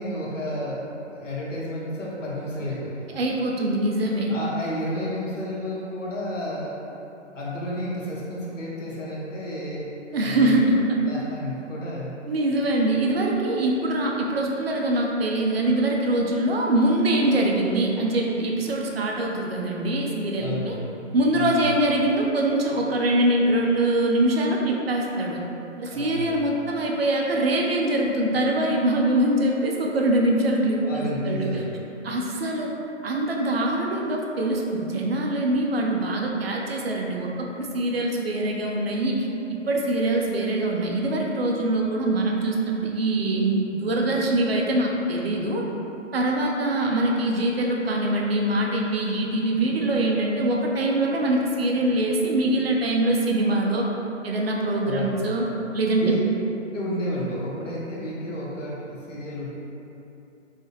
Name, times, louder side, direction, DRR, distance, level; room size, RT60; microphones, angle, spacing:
voice 1, 0.0-3.1 4.3-6.8 7.3-9.9 10.2-10.6 11.0-12.1 20.4-20.8 21.3-21.7 25.9-26.4 30.8-31.7 54.8-55.3 55.9-56.2 56.7-59.5, left 1 dB, 80° left, -6 dB, 1.1 m, -31 dB
voice 2, 3.1-4.3 10.1-10.8 12.3-20.8 21.1-25.4 25.8-31.6 32.0-32.7 33.0-45.6 46.1-53.9 54.2-55.4 55.7-56.1, right 1 dB, 55° right, -1 dB, 0.5 m, -23 dB
3.3 x 2.7 x 2.8 m, 2.9 s
hypercardioid pair, 155°, 37 cm